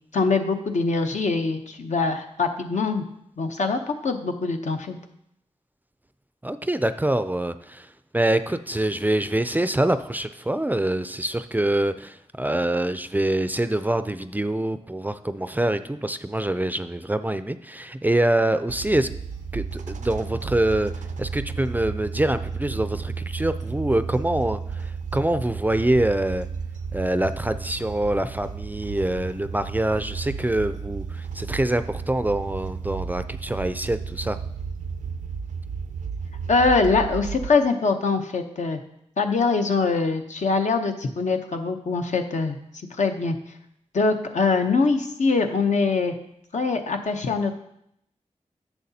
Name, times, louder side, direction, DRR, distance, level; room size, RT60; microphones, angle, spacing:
voice 1, 0.1-3.1 3.4-5.0 36.5-38.8 39.2-42.6 43.0-43.4 43.9-46.1 46.5-47.5, left 4 dB, 75° left, 5 dB, 0.8 m, -23 dB
voice 2, 6.4-7.9 8.1-19.1 19.5-26.5 26.9-34.4, right 1 dB, 15° right, 11 dB, 0.3 m, -25 dB
sound 1, 18.7-37.5, right 5 dB, 85° right, 0.4 m, -33 dB
10.5 x 7.1 x 2.8 m, 0.76 s
wide cardioid pair, 80°, 12 cm